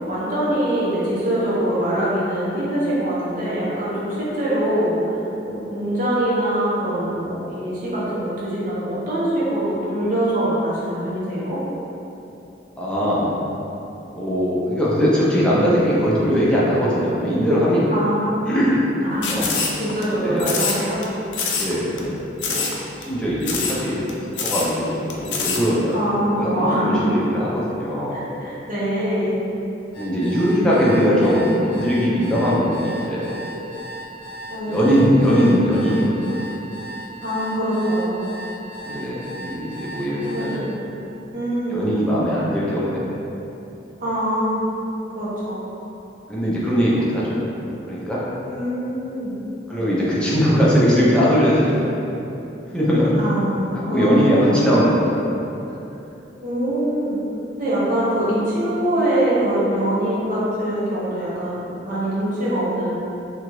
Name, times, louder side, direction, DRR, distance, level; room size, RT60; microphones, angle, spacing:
voice 1, 0.1-5.2 5.5-11.6 17.9-18.5 19.0-19.4 19.8-21.0 25.9-27.1 28.1-29.4 31.2-31.4 34.5-34.9 37.2-38.2 40.2-40.6 41.3-41.8 44.0-44.6 45.1-45.7 48.5-49.3 53.1-54.8 56.4-57.2 57.6-63.0, right 1 dB, 50° right, -9 dB, 0.8 m, -23 dB
voice 2, 12.8-13.3 14.1-17.9 18.4-18.8 19.3-19.6 20.2-20.5 21.5-22.0 22.4-22.7 23.1-24.1 24.4-26.0 26.3-28.2 30.0-33.3 34.7-36.3 38.8-40.6 41.7-43.0 46.3-47.4 47.9-48.2 49.7-51.8 52.7-53.1 53.9-55.2, equal, 5° left, -8 dB, 0.5 m, -20 dB
Camera Flash Sound, 19.2-20.0 20.4-21.0 21.3-21.7 22.0-22.1 22.4-22.8 23.0-23.1 23.4-23.8 24.1-24.2 24.4-24.7 25.1-25.6, left 5 dB, 85° left, 0.4 m, -24 dB
sound 1, 29.9-40.6, right 1 dB, 30° left, 0.8 m, -36 dB
2.9 x 2.4 x 3.0 m, 3.0 s
head